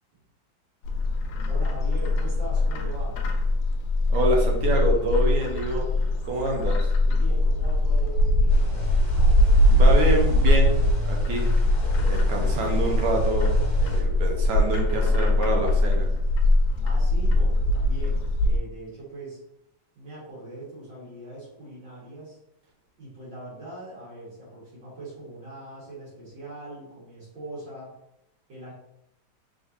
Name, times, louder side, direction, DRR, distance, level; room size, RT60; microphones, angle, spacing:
Bird, 0.8-18.6, left 1 dB, 75° left, 1.1 m, -22 dB
voice 1, 1.5-3.2 6.2-8.7 16.8-19.4 19.9-22.4 23.0-27.9 28.5-28.7, right 1 dB, 60° right, -7 dB, 2.0 m, -41 dB
voice 2, 4.1-5.9 6.2-6.8 9.7-10.8 11.1-11.5 12.0-16.1, right 1 dB, 85° right, 0 dB, 1.8 m, -26 dB
sound 1, 8.5-14.0, left 3 dB, 50° left, 1.0 m, -35 dB
3.8 x 3.6 x 2.6 m, 0.80 s
omnidirectional pair, 2.3 m